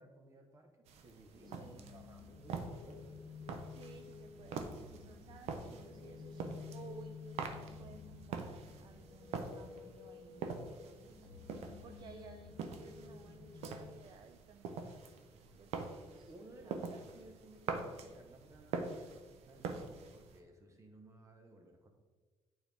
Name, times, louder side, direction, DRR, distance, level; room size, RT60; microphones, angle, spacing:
voice 1, 0.0-3.1 15.3-15.8 16.1-21.9, right 1 dB, 30° right, 4 dB, 1.1 m, -58 dB
sound 1, 0.9-20.4, right 4 dB, 80° right, 0.7 m, -45 dB
sound 2, 1.3-14.0, left 5 dB, 50° left, 1.2 m, -52 dB
voice 2, 1.5-1.8 3.6-15.1 15.6-16.3 16.6-16.8, right 5 dB, 45° right, 6 dB, 0.5 m, -57 dB
8.8 x 4.4 x 3.4 m, 1.4 s
cardioid pair, 115°, 11 cm